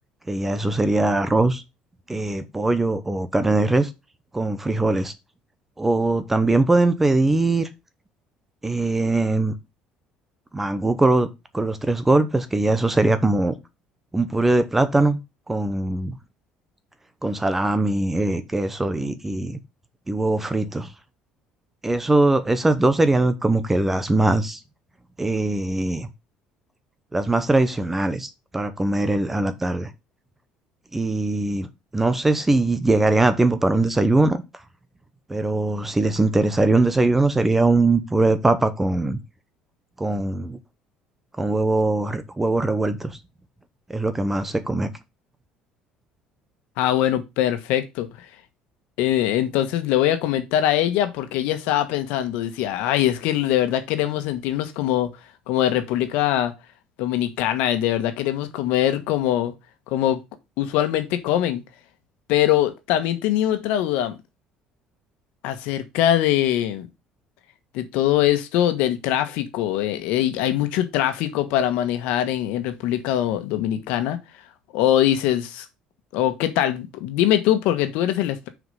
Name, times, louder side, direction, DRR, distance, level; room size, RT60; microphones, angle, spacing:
voice 1, 0.3-1.6 2.1-3.9 4.3-5.1 5.8-7.7 8.6-9.5 10.5-11.3 11.5-13.5 14.1-15.2 15.5-16.2 17.2-19.6 20.1-20.9 21.8-24.6 25.2-26.1 27.1-29.9 30.9-31.7 31.9-34.4 35.3-39.2 40.0-40.6 41.4-43.2 43.9-44.9, right 2 dB, 10° right, 0.9 m, -21 dB
voice 2, 46.8-48.2 49.0-55.1 55.5-56.5 57.0-59.5 59.9-60.2 60.6-61.6 62.3-64.1 65.4-66.9 67.7-74.2 74.7-75.6 76.1-78.5, left 12 dB, 85° left, 1.4 m, -22 dB
6.3 x 5.0 x 5.5 m
cardioid pair, 150°, 2 cm